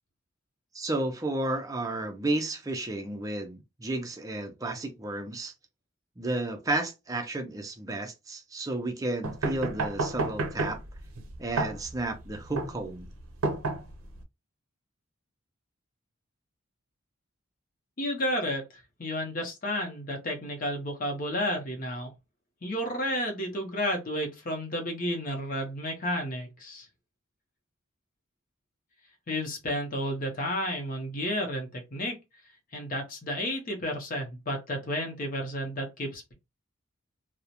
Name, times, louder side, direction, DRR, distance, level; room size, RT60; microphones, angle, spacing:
voice 1, 0.7-5.5 6.2-10.8 11.4-13.1, right 2 dB, 15° right, 0.4 m, -32 dB
sound 1, 9.2-14.2, right 3 dB, 90° right, 0.5 m, -31 dB
voice 2, 18.0-18.6 19.0-22.1 22.6-26.9 29.3-32.1 32.7-36.3, equal, 40° left, 0.7 m, -31 dB
2.3 x 2.1 x 2.8 m
head